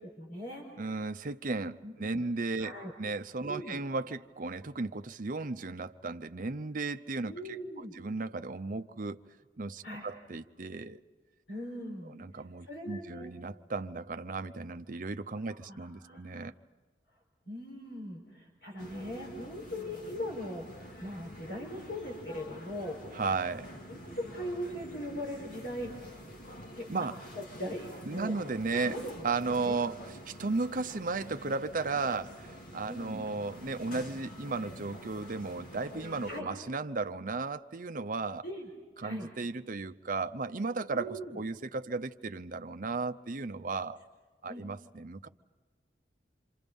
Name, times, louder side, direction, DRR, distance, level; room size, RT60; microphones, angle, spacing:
voice 1, 0.0-0.7 1.8-2.2 2.6-2.9 3.4-3.8 7.3-7.9 9.8-10.1 11.5-13.3 15.4-16.4 17.5-23.0 23.9-26.2 26.8-27.1 27.3-28.4 28.7-29.8 32.9-33.2 36.3-36.5 38.4-38.7 39.0-39.3 40.9-41.4 44.5-44.6, equal, 65° left, 4.8 m, -40 dB
voice 2, 0.8-2.7 3.0-9.2 9.6-11.0 12.1-16.5 23.1-23.7 26.9-27.1 28.1-29.0 29.2-30.0 30.3-38.5 39.0-44.0 44.4-45.3, right 3 dB, 50° right, 0.7 m, -35 dB
sound 1, 18.8-36.4, equal, 50° left, 2.4 m, -47 dB
27.5 x 27.0 x 5.4 m
head